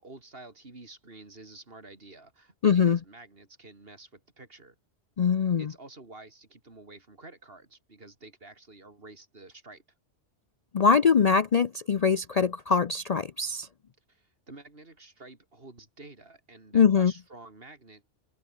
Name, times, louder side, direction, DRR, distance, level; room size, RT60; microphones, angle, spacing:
voice 1, 0.0-4.8 5.6-9.8 14.1-18.1, right 2 dB, 55° right, 3.4 m, -50 dB
voice 2, 2.6-3.0 5.2-5.7 10.7-13.7 16.7-17.1, left 6 dB, 45° left, 0.6 m, -22 dB
omnidirectional pair, 1.2 m